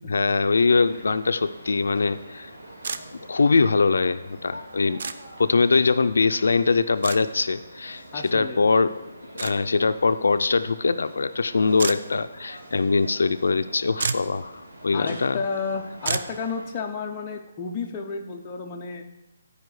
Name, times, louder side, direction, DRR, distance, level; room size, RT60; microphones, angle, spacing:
voice 1, 0.1-2.5 3.3-5.0 5.4-9.1 9.3-15.4, left 4 dB, 80° left, 11 dB, 0.4 m, -22 dB
sound 1, 0.7-16.7, right 1 dB, 85° right, 3.0 m, -45 dB
sound 2, 2.8-3.0 5.0-5.2 7.0-7.2 9.4-9.5 11.8-12.0 13.6-13.7 13.9-14.3 16.0-16.3, right 5 dB, 45° right, 0.4 m, -28 dB
voice 2, 8.1-8.6 14.9-19.0, left 5 dB, 15° left, 0 dB, 0.6 m, -31 dB
11.0 x 4.9 x 4.7 m, 0.97 s
hypercardioid pair, 180°, 0 cm